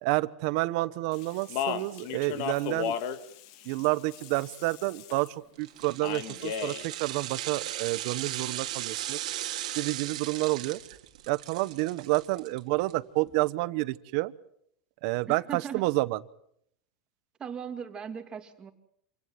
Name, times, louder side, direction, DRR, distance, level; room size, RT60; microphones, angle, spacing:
voice 1, 0.0-2.9 3.7-9.2 9.8-10.8 11.3-14.3 15.0-16.2, right 21 dB, 60° right, 16 dB, 1.0 m, -29 dB
Speech, 1.1-5.3 6.0-6.9, left 9 dB, 60° left, 2.1 m, -35 dB
sound 1, 5.6-12.9 13.3-13.4, right 13 dB, 90° right, 2.4 m, -37 dB
voice 2, 15.3-15.8 17.4-18.7, right 7 dB, 25° right, 6 dB, 2.6 m, -38 dB
27.0 x 17.0 x 7.8 m, 0.70 s
supercardioid pair, 140°, 4 cm